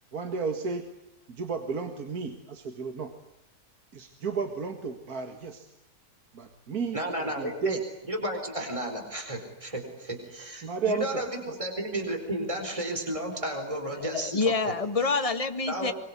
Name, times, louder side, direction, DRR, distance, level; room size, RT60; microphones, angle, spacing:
voice 1, 0.1-0.9 1.3-3.1 3.9-5.7 6.3-7.8 10.6-11.2 11.5-11.6, right 5 dB, 65° right, 6 dB, 2.4 m, -33 dB
voice 2, 6.9-7.8 8.1-14.3 14.7-14.8 15.7-15.9, right 1 dB, 20° right, 5 dB, 4.5 m, -33 dB
voice 3, 14.0-15.9, left 4 dB, 20° left, 7 dB, 1.7 m, -27 dB
24.5 x 24.0 x 9.7 m, 0.78 s
omnidirectional pair, 1.7 m